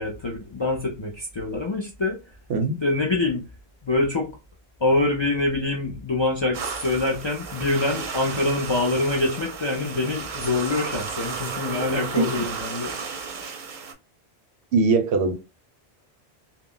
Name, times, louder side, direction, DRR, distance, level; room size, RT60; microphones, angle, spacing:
voice 1, 0.0-2.2 2.8-3.4 3.8-4.3 4.8-12.9, left 2 dB, 45° left, 0.3 m, -25 dB
sound 1, 6.5-13.9, right 5 dB, 55° right, 0.7 m, -33 dB
voice 2, 14.7-15.3, right 3 dB, 80° right, 0.8 m, -20 dB
2.2 x 2.0 x 3.6 m
omnidirectional pair, 1.1 m